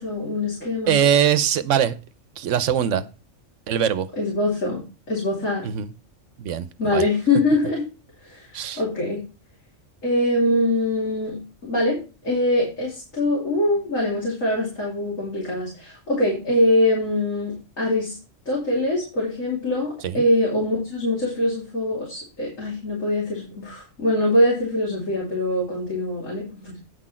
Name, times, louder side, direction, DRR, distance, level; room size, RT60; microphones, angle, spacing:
voice 1, 0.0-1.0 4.2-5.7 6.8-7.8 8.2-9.2 10.0-11.4 11.6-12.0 12.2-18.2 18.4-26.8, left 1 dB, 90° left, 3.4 m, -23 dB
voice 2, 0.9-1.9 2.4-3.0 3.7-4.1 5.6-5.9 6.4-7.0 8.5-8.8 20.0-20.2, right 9 dB, 75° right, 1.0 m, -22 dB
9.8 x 6.1 x 4.3 m
omnidirectional pair, 1.3 m